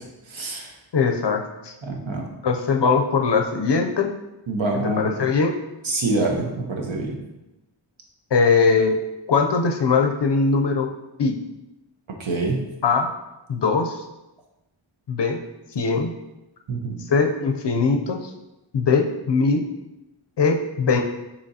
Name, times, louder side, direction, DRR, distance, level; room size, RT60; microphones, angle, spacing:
voice 1, 0.3-0.7 1.8-2.3 4.5-5.1 5.8-7.2 12.2-12.6 16.7-17.0, right 2 dB, 70° right, 1 dB, 0.9 m, -25 dB
voice 2, 0.9-1.7 2.4-4.1 4.7-5.6 8.3-9.0 9.3-10.9 11.2-11.3 12.8-13.1 13.5-14.0 15.1-15.4 15.7-16.1 17.1-18.3 18.7-19.6 20.4-21.0, left 4 dB, 60° left, 4 dB, 0.5 m, -21 dB
6.4 x 3.0 x 2.7 m, 0.98 s
wide cardioid pair, 55°, 49 cm